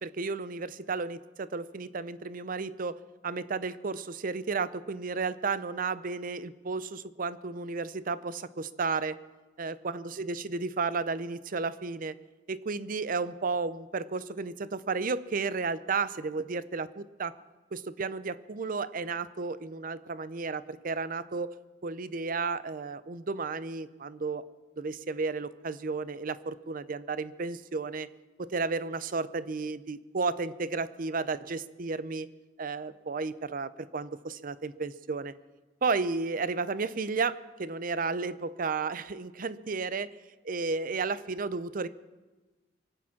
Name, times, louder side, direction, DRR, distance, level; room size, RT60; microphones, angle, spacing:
voice 1, 0.0-9.2 9.6-12.2 12.5-17.4 17.7-21.5 21.8-24.5 24.8-28.1 28.4-32.3 32.6-35.3 35.8-40.1 40.4-41.9, right 4 dB, 50° right, 15 dB, 0.6 m, -33 dB
24.0 x 8.6 x 5.8 m, 1.2 s
head